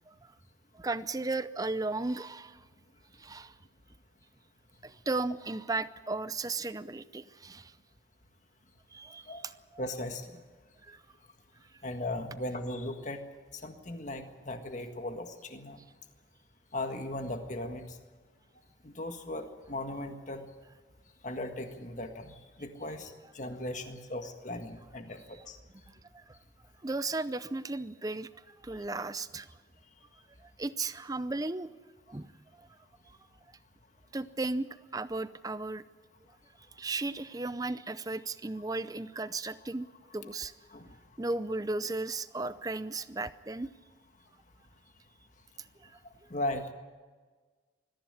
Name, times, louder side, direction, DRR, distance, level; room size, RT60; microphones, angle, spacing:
voice 1, 0.7-2.6 3.2-3.5 4.8-7.7 8.9-9.8 10.9-11.0 25.9-26.4 26.8-29.5 30.4-31.7 32.1-32.3 32.6-32.7 34.1-34.7 34.9-35.8 36.8-39.9 40.1-40.5 41.2-43.7 45.8-45.9, right 3 dB, 20° right, 14 dB, 0.5 m, -35 dB
voice 2, 9.8-10.2 11.8-13.2 13.6-15.8 16.7-17.8 18.8-20.4 21.2-25.6 40.7-40.9 46.3-46.7, left 1 dB, 40° left, 6 dB, 1.7 m, -37 dB
22.0 x 14.5 x 9.8 m, 1.4 s
head